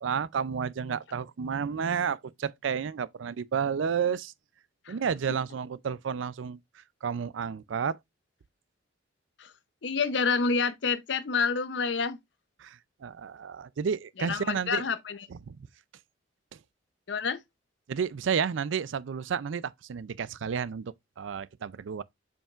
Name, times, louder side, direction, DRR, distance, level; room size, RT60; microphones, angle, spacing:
voice 1, 0.0-4.3 4.9-8.0 12.6-14.8 15.3-15.6 16.5-16.6 17.9-22.0, right 6 dB, 75° right, 0.4 m, -31 dB
voice 2, 9.8-12.2 14.3-15.2 17.1-17.4, left 5 dB, 65° left, 0.7 m, -28 dB
7.2 x 5.6 x 2.4 m
head